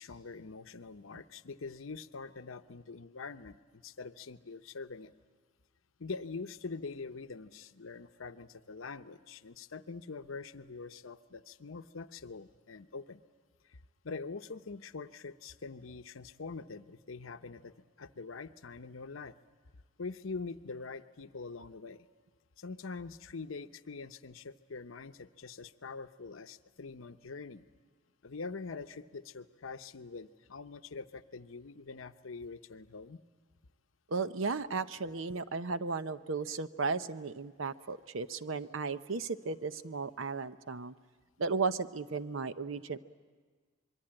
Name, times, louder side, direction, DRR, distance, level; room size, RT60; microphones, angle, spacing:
voice 1, 0.0-5.1 6.0-13.2 13.7-13.8 14.0-19.3 20.0-22.1 22.6-27.6 28.2-33.2, left 4 dB, 85° left, 11 dB, 0.8 m, -44 dB
voice 2, 34.1-40.9 41.4-43.0, right 4 dB, 80° right, 12 dB, 0.8 m, -35 dB
26.0 x 22.5 x 8.8 m, 1.5 s
head